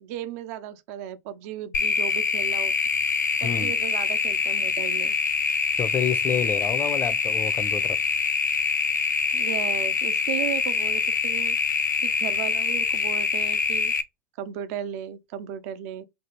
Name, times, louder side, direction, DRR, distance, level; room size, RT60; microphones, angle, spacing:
voice 1, 0.0-2.8 3.4-5.1 9.3-11.6 12.0-13.9 14.4-16.0, right 10 dB, 55° right, 0.5 m, -35 dB
sound 1, 1.7-14.0, left 5 dB, 90° left, 0.4 m, -25 dB
voice 2, 3.4-3.7 5.8-8.0, left 7 dB, 25° left, 0.5 m, -28 dB
3.3 x 2.3 x 2.9 m
hypercardioid pair, 90°, 9 cm